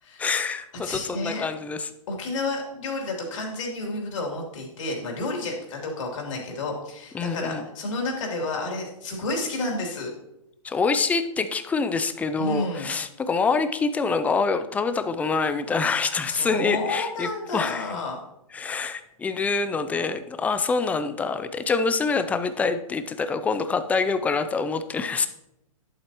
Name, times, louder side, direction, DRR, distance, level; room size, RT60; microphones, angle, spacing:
voice 1, 0.2-1.9 7.1-7.6 10.6-17.9 18.5-25.3, left 4 dB, 10° left, 11 dB, 0.4 m, -26 dB
voice 2, 0.8-1.5 2.1-10.1 12.3-12.9 16.2-18.2, left 2 dB, 60° left, 0 dB, 3.1 m, -30 dB
11.5 x 7.6 x 3.0 m, 0.83 s
hypercardioid pair, 130°, 18 cm